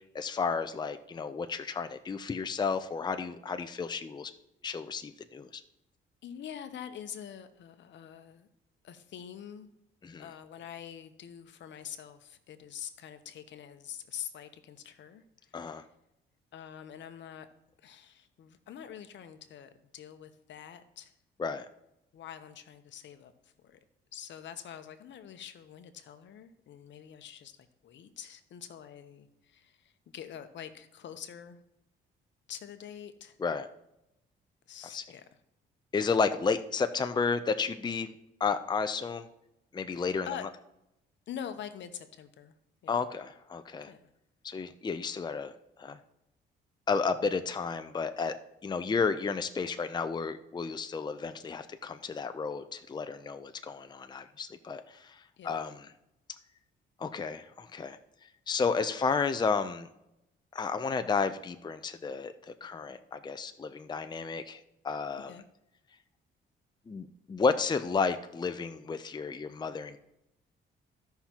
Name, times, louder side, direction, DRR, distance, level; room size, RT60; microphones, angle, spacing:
voice 1, 0.1-4.3 4.6-5.6 10.0-10.2 15.5-15.8 21.4-21.7 33.4-33.7 34.9-35.0 35.9-38.1 38.4-39.3 39.7-40.3 42.9-43.9 44.4-45.5 45.8-46.0 46.9-48.3 48.6-55.8 57.0-58.0 58.5-59.9 60.5-65.3 66.9-70.0, left 5 dB, 20° left, 9 dB, 0.5 m, -32 dB
voice 2, 6.2-8.5 8.8-9.7 10.2-15.9 16.5-17.5 17.8-21.1 22.1-23.8 24.1-27.6 27.8-31.6 32.5-33.4 34.7-35.2 39.9-40.4 41.3-42.5 42.8-43.1 43.9-44.0 48.8-49.0 55.4-55.7 65.3-65.4, left 9 dB, 65° left, 10 dB, 0.9 m, -45 dB
15.5 x 5.7 x 2.9 m, 0.86 s
cardioid pair, 90°, 20 cm